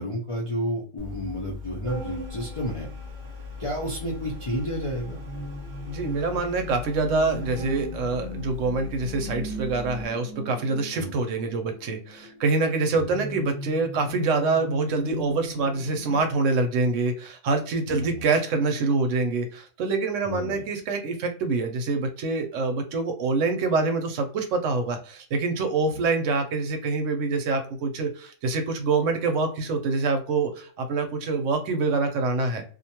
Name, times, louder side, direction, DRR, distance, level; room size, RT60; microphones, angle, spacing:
voice 1, 0.0-2.9 3.6-5.2 11.0-11.1 13.0-13.1 17.9-18.2 20.2-20.6 25.9-26.0, equal, 45° left, -4 dB, 0.4 m, -31 dB
Organ, 1.0-10.0, left 3 dB, 50° right, 0.6 m, -38 dB
sound 1, 4.8-16.2, equal, 15° left, 0.7 m, -40 dB
voice 2, 5.8-32.6, right 3 dB, 70° right, 6 dB, 0.9 m, -25 dB
2.5 x 2.2 x 2.8 m, 0.42 s
omnidirectional pair, 1.4 m